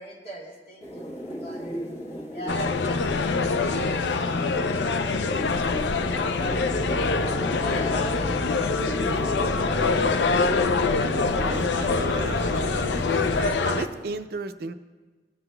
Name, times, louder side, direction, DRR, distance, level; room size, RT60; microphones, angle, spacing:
voice 1, 0.0-1.7 2.3-9.3 9.6-9.9, right 2 dB, 60° left, -5 dB, 1.6 m, -40 dB
sound 1, 0.8-14.0, equal, 40° left, 1.4 m, -36 dB
sound 2, 2.5-13.9, left 4 dB, 80° left, 0.5 m, -25 dB
sound 3, 6.4-13.5, equal, 20° left, 1.4 m, -34 dB
voice 2, 11.3-12.9 13.4-14.7, right 3 dB, 60° right, 10 dB, 0.5 m, -34 dB
16.5 x 7.8 x 2.2 m, 1.3 s
head